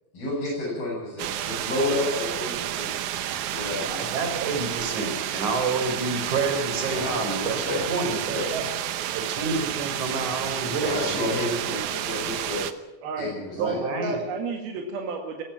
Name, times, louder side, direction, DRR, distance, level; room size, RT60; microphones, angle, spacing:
voice 1, 0.1-2.9 3.5-4.1 6.9-8.4 10.7-12.6 13.2-13.8, left 2 dB, 80° left, -7 dB, 8.8 m, -30 dB
sound 1, 1.2-12.7, right 11 dB, 70° right, 2.1 m, -30 dB
voice 2, 3.8-8.6 9.1-11.3 13.6-14.2, right 3 dB, 55° right, 5 dB, 5.1 m, -29 dB
voice 3, 13.0-15.4, right 4 dB, 85° right, 2 dB, 3.9 m, -31 dB
20.5 x 15.0 x 8.8 m, 1.1 s
omnidirectional pair, 4.2 m